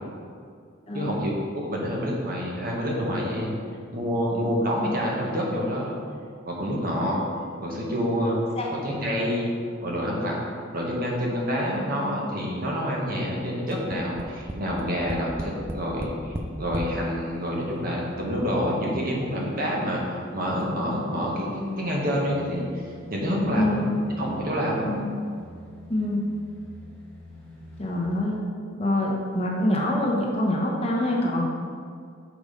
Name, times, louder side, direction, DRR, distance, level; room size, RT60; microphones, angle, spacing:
voice 1, 0.9-3.6 3.9-5.9 6.4-7.2 7.6-8.4 8.7-9.5 9.8-10.4 10.7-20.0 20.3-22.8 23.1-23.8 24.2-25.0, equal, 45° right, -3 dB, 1.4 m, -27 dB
Tap, 13.9-16.9 17.8-17.9 18.2-18.3, equal, 10° right, 0.4 m, -34 dB
sound 1, 16.5-28.1 28.5-28.6, left 2 dB, 5° left, 1.7 m, -46 dB
voice 2, 25.9-26.2 27.8-28.4 28.8-31.4, left 1 dB, 30° left, -3 dB, 1.1 m, -25 dB
6.5 x 5.1 x 5.2 m, 2.2 s
head